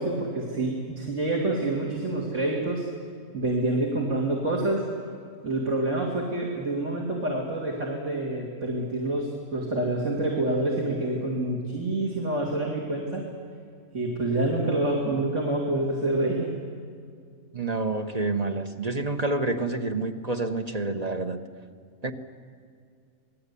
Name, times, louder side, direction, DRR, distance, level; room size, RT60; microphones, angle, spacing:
voice 1, 0.0-2.8 3.3-4.9 5.4-13.3 13.9-16.5, right 2 dB, 60° right, -2 dB, 3.2 m, -27 dB
voice 2, 17.5-21.4 22.0-22.1, right 2 dB, 30° right, 6 dB, 1.1 m, -28 dB
27.5 x 19.5 x 8.5 m, 2.2 s
omnidirectional pair, 1.4 m